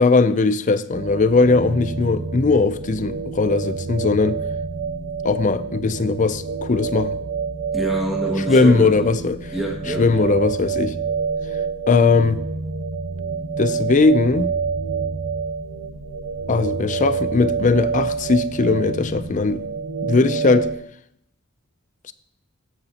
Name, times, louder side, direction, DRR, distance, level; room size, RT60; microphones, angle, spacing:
voice 1, 0.0-4.4 5.2-7.2 8.5-9.5 10.0-11.0 11.9-12.4 13.6-14.5 16.5-19.6 20.0-20.7, left 3 dB, 35° left, 0.5 m, -19 dB
sound 1, 0.9-20.7, right 5 dB, 70° right, 1.2 m, -27 dB
voice 2, 7.7-9.2 9.5-10.3, right 1 dB, ahead, 2.0 m, -27 dB
13.5 x 9.8 x 2.9 m
head